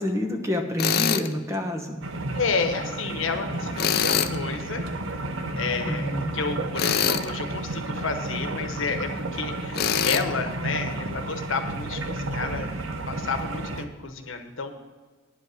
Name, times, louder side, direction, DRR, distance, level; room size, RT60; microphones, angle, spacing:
voice 1, 0.0-2.0 5.8-6.4, left 1 dB, 15° right, 3 dB, 1.0 m, -28 dB
Tools, 0.8-1.3 3.8-4.4 6.8-7.3 9.7-10.2, left 8 dB, 50° left, 0.5 m, -23 dB
sound 1, 2.0-13.8, right 2 dB, 75° right, 0.8 m, -32 dB
voice 2, 2.3-4.8 5.6-12.7 13.1-14.7, left 4 dB, 75° left, 6 dB, 1.0 m, -31 dB
10.0 x 5.3 x 7.6 m, 1.4 s
head